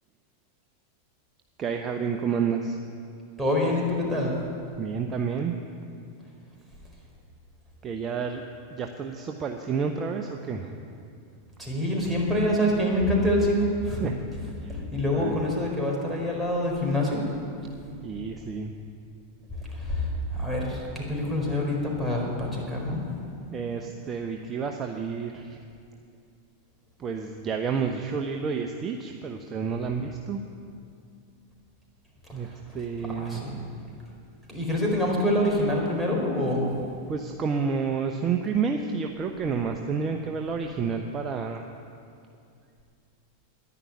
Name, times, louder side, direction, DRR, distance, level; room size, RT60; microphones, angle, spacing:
voice 1, 1.6-2.8 4.8-5.5 7.8-8.4 8.7-11.1 14.0-14.2 14.6-14.8 15.1-15.4 18.0-18.7 19.6-19.7 22.2-22.3 23.5-25.6 27.0-30.4 32.3-33.9 37.1-41.7, right 6 dB, 30° right, 3 dB, 0.9 m, -30 dB
voice 2, 3.4-4.3 11.6-14.1 14.7-17.2 19.7-20.1 20.3-23.0 23.5-23.6 32.4-32.5 33.1-33.5 34.5-36.7, left 1 dB, 5° right, -3 dB, 4.8 m, -26 dB
11.0 x 10.5 x 9.6 m, 2.4 s
hypercardioid pair, 95°, 0 cm